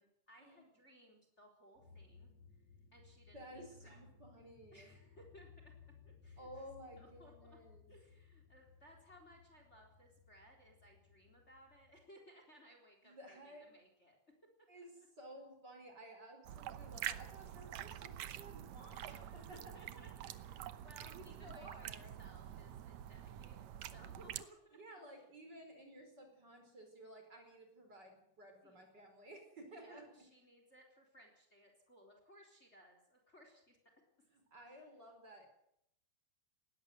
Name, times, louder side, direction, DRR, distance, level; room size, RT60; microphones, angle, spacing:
voice 1, 0.0-2.3 2.9-4.0 4.7-5.7 6.0-6.7 6.9-7.6 7.9-14.2 14.8-14.9 19.0-24.8 25.1-25.3 28.6-28.8 29.7-33.8 34.2-34.3 34.7-34.8, equal, 20° left, 3 dB, 4.0 m, -62 dB
sound 1, 1.8-12.0, left 5 dB, 60° left, 3.9 m, -62 dB
voice 2, 3.3-4.9 6.4-7.9 13.0-13.7 14.7-14.9 15.2-19.7 21.1-22.1 24.7-30.0 34.3-35.5, right 1 dB, 35° right, 4 dB, 5.1 m, -55 dB
sound 2, 16.4-24.4, right 11 dB, 70° right, 2.2 m, -47 dB
19.5 x 16.5 x 7.9 m, 0.73 s
omnidirectional pair, 3.5 m